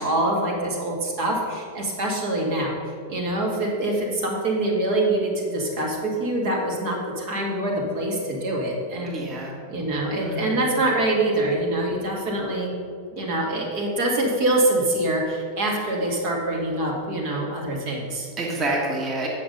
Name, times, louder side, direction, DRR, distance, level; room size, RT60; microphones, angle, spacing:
voice 1, 0.0-2.8 3.1-9.2 9.7-12.7 13.1-18.3, right 1 dB, 55° right, -1 dB, 1.9 m, -25 dB
voice 2, 9.0-9.6 10.2-10.6 18.4-19.3, right 2 dB, 30° right, -2 dB, 1.8 m, -28 dB
8.5 x 6.0 x 5.4 m, 2.3 s
hypercardioid pair, 95°, 0 cm